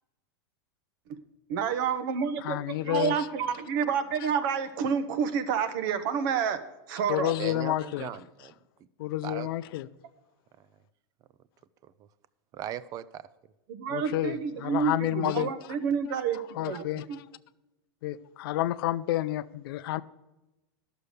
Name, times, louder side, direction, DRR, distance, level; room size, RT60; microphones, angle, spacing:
voice 1, 1.5-2.6 2.8-7.3 13.7-17.2, right 7 dB, 60° right, 1.0 m, -29 dB
voice 2, 2.4-3.2 7.1-8.1 9.0-9.9 13.9-15.5 16.6-17.2 18.0-20.0, left 15 dB, 65° left, 0.5 m, -30 dB
voice 3, 7.4-8.5 9.2-9.5 11.8-11.9 12.5-13.2, right 11 dB, 30° right, 0.4 m, -38 dB
11.0 x 6.9 x 6.5 m
supercardioid pair, 145°, 13 cm